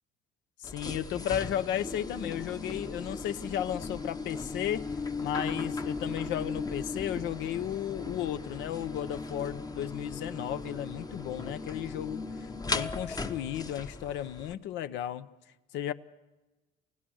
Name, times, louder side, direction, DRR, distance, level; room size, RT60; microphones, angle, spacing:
voice 1, 0.6-4.9 5.2-12.2 12.6-15.3 15.7-15.9, left 11 dB, 70° left, 13 dB, 0.9 m, -34 dB
sound 1, 0.6-14.5, left 3 dB, 20° left, 0.9 m, -37 dB
29.0 x 16.5 x 6.4 m, 1.1 s
supercardioid pair, 85°, 19 cm